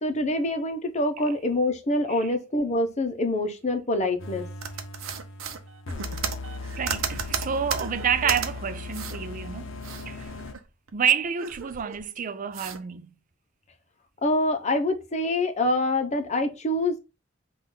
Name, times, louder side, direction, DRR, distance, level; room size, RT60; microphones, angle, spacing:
voice 1, 0.0-4.5 14.2-17.0, left 1 dB, 35° left, 0.8 m, -25 dB
sound 1, 4.2-10.5, left 3 dB, 70° left, 0.6 m, -38 dB
sound 2, 4.6-8.5 8.9-9.2 9.5-10.9 11.2-12.0 12.5-12.8, right 7 dB, 90° right, 0.7 m, -34 dB
voice 2, 6.8-10.3 10.9-13.1, right 7 dB, 40° right, 0.4 m, -29 dB
5.6 x 2.5 x 3.7 m
head